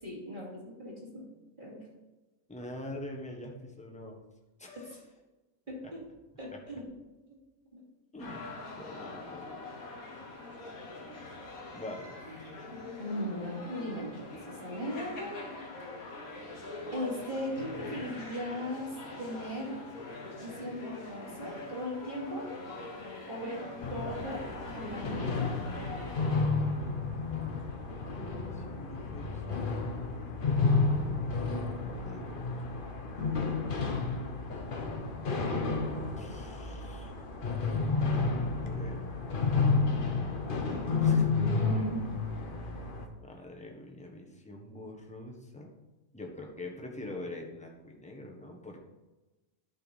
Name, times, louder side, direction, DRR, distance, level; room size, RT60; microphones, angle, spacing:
voice 1, 0.0-1.2 1.6-1.8 4.7-4.9 5.7-6.0 6.4-6.9 7.3-7.4 7.7-7.8 12.3-12.4 13.0-15.4 16.9-19.8 20.4-22.4 23.3-23.6 23.9-24.5 24.7-25.6 41.6-42.1, equal, 35° right, -6 dB, 2.8 m, -38 dB
voice 2, 2.5-4.2 4.6-5.1 5.8-5.9 8.1-9.6 11.7-12.2 28.4-29.7 30.2-30.6 30.8-32.5 36.2-37.1 38.5-39.0 40.9-41.4 43.2-45.7 46.1-48.8, left 1 dB, 5° left, 0 dB, 1.1 m, -45 dB
sound 1, 8.2-26.4, left 2 dB, 85° left, 1.9 m, -43 dB
sound 2, 23.8-43.1, left 4 dB, 45° left, 1.0 m, -31 dB
12.0 x 5.4 x 4.2 m, 1.1 s
omnidirectional pair, 1.4 m